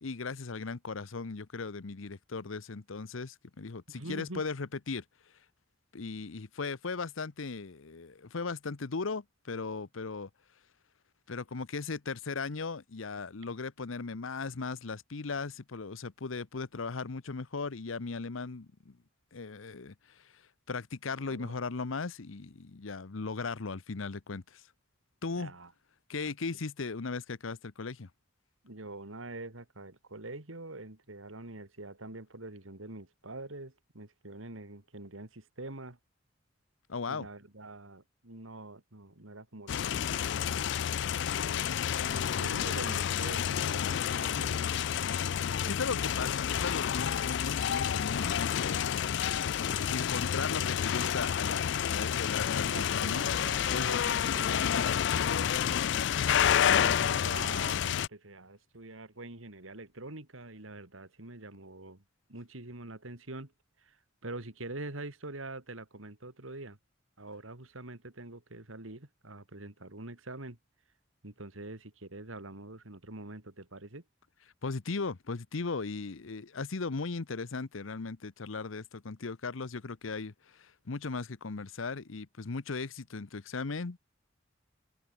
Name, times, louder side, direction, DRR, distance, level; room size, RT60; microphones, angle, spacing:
voice 1, 0.0-5.0 5.9-10.3 11.3-19.0 19.3-20.4 20.7-24.6 25.2-25.5 26.1-28.1 36.9-37.3 45.7-48.8 49.2-49.4 49.9-53.3 53.7-55.5 74.6-84.0, left 4 dB, 85° left, 0.9 m, -37 dB
voice 2, 3.9-4.4 21.3-21.5 25.4-25.7 26.2-26.3 28.6-36.0 37.1-40.1 41.5-41.7 42.0-44.6 45.6-46.1 49.6-50.1 52.6-54.8 56.6-62.0 62.3-63.5 63.8-66.8 67.2-70.6 71.2-74.0, right 2 dB, 90° right, 2.9 m, -45 dB
sound 1, 39.7-58.1, left 9 dB, 60° left, 0.4 m, -29 dB
open air
head